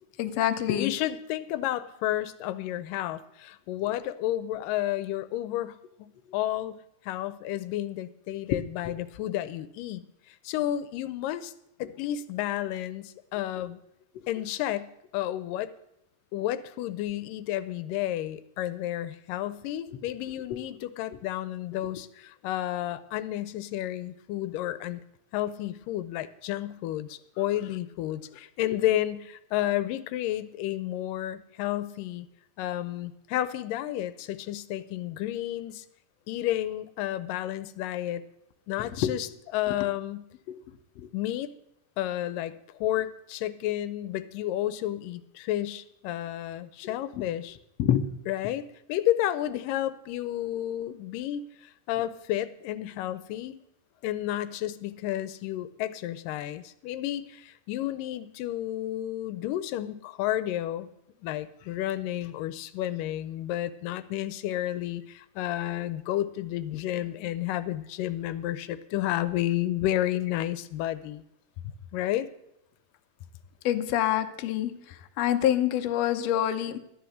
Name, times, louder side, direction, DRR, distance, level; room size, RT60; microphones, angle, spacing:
voice 1, 0.2-0.9 8.5-8.6 14.2-14.3 20.5-20.6 39.0-39.1 40.5-40.6 41.0-41.1 46.8-46.9 47.8-48.1 73.7-76.8, left 11 dB, 70° left, 8 dB, 1.6 m, -26 dB
voice 2, 0.8-6.8 7.0-11.5 11.8-13.8 14.3-15.7 16.3-25.0 25.3-32.3 32.6-35.9 36.3-38.2 38.7-40.3 41.1-41.5 42.0-47.6 48.3-53.6 54.0-60.9 61.2-71.2 71.9-72.3, left 13 dB, 85° left, 14 dB, 2.3 m, -31 dB
13.0 x 10.5 x 6.3 m, 0.81 s
omnidirectional pair, 3.8 m